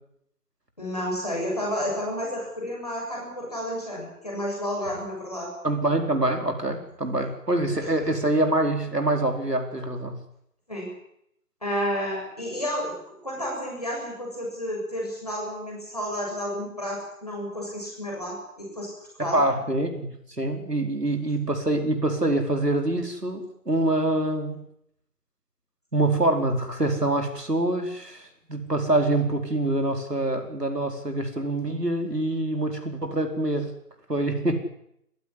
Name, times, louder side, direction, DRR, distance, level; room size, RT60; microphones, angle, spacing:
voice 1, 0.8-5.5 10.7-10.9 11.6-12.9 13.2-18.9 19.2-19.4, equal, 25° left, -2 dB, 7.3 m, -31 dB
voice 2, 5.6-10.2 19.2-24.6 25.9-33.7 34.1-34.6, right 2 dB, 80° right, 5 dB, 4.7 m, -25 dB
21.5 x 15.5 x 9.9 m, 0.76 s
figure-of-eight pair, 180°, 47 cm